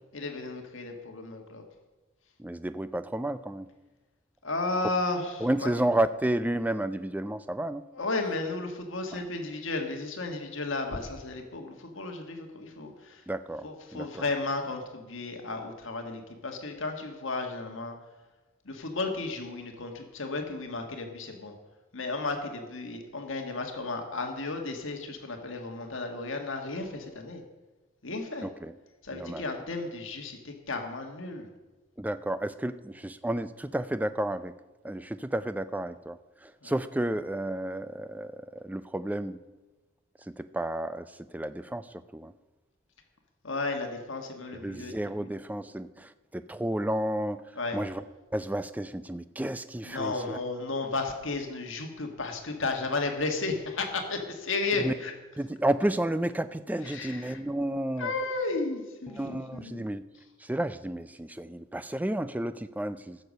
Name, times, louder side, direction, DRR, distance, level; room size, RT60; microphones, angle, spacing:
voice 1, 0.1-1.6 4.4-5.7 7.9-13.2 13.6-17.9 18.6-21.5 21.9-27.4 28.0-28.5 29.0-31.5 36.6-36.7 43.4-45.3 47.6-47.8 49.8-55.1 56.8-57.4 58.0-59.9, left 3 dB, 70° left, 4 dB, 1.6 m, -33 dB
voice 2, 2.4-3.7 5.4-7.8 9.1-9.2 13.3-14.3 28.4-28.7 29.1-29.4 32.0-34.5 34.8-39.4 40.3-41.1 41.3-41.9 42.1-42.3 44.5-47.4 47.7-48.0 48.3-50.4 54.7-54.9 55.4-58.1 59.1-60.0 60.4-63.2, right 1 dB, 10° right, 13 dB, 0.3 m, -31 dB
15.0 x 6.9 x 6.4 m, 1.2 s
head